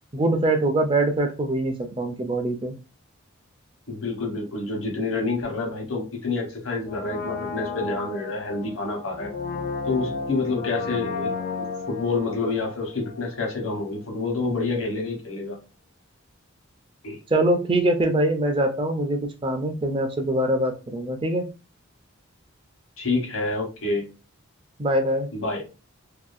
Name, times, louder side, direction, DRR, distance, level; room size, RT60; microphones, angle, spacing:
voice 1, 0.1-2.8 17.3-21.5 24.8-25.3, right 1 dB, 25° right, 5 dB, 0.4 m, -23 dB
voice 2, 3.9-9.3 9.8-11.3 11.9-15.6 17.0-17.2 23.0-24.1 25.3-25.6, left 3 dB, 80° left, 1 dB, 1.0 m, -28 dB
Brass instrument, 6.8-13.7 13.9-14.0, left 4 dB, 45° left, 0.4 m, -33 dB
2.7 x 2.5 x 2.4 m, 0.31 s
head